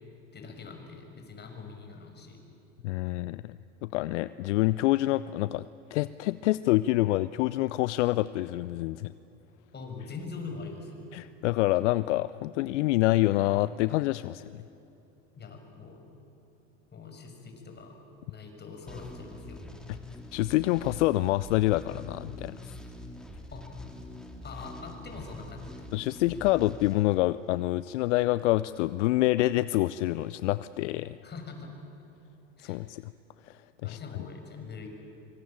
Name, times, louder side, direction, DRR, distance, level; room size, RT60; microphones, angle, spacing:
voice 1, 0.3-2.4 9.7-11.1 15.4-16.0 16.9-17.9 18.3-19.6 23.5-23.7 24.4-26.0 31.2-31.7 32.6-32.8 33.8-34.9, left 4 dB, 25° left, 4 dB, 6.4 m, -43 dB
voice 2, 2.8-9.1 11.1-14.6 20.3-22.6 25.9-31.2 32.6-33.1 33.5-34.0, left 17 dB, 65° left, 16 dB, 0.7 m, -27 dB
sound 1, 18.9-27.7, left 1 dB, ahead, 3.9 m, -44 dB
25.5 x 24.5 x 8.9 m, 2.9 s
hypercardioid pair, 90°, 38 cm